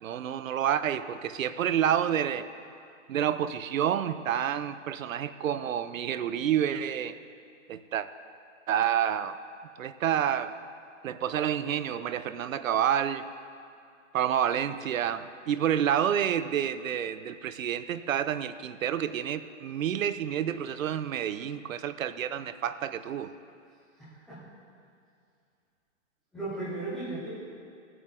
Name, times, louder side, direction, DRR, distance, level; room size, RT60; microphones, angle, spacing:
voice 1, 0.0-2.5 3.1-7.2 7.7-8.1 8.7-9.4 9.8-10.5 11.0-13.2 14.1-23.3, right 9 dB, 90° right, 13 dB, 0.7 m, -29 dB
voice 2, 24.0-24.4 26.3-27.3, right 2 dB, ahead, -14 dB, 0.4 m, -36 dB
17.5 x 7.7 x 3.8 m, 2.4 s
hypercardioid pair, 155°, 39 cm